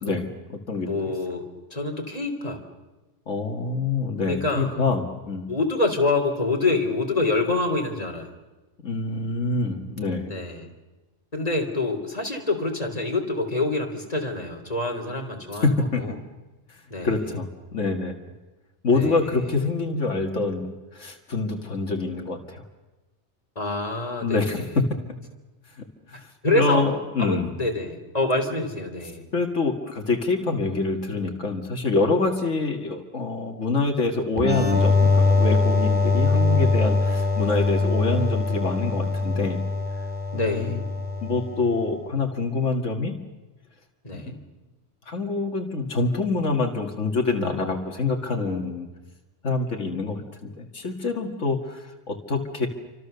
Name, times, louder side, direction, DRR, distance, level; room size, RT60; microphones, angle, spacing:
voice 1, 0.0-0.9 3.3-5.5 8.8-10.3 15.6-16.0 17.0-18.1 18.8-22.6 24.2-24.6 25.7-26.3 26.6-27.5 29.3-39.6 40.3-40.8 41.2-43.2 45.1-48.9 49.4-52.7, left 3 dB, 85° left, 3 dB, 2.4 m, -26 dB
voice 2, 0.8-2.6 4.3-4.8 5.5-8.3 10.2-10.7 11.3-16.1 16.9-17.1 18.9-19.5 23.6-24.6 26.1-26.8 27.2-29.2 40.3-40.8 44.0-44.4, left 2 dB, 30° left, 2 dB, 3.5 m, -26 dB
sound 1, 34.4-41.8, left 3 dB, 5° right, 3.0 m, -22 dB
28.5 x 25.5 x 6.9 m, 1.1 s
omnidirectional pair, 1.2 m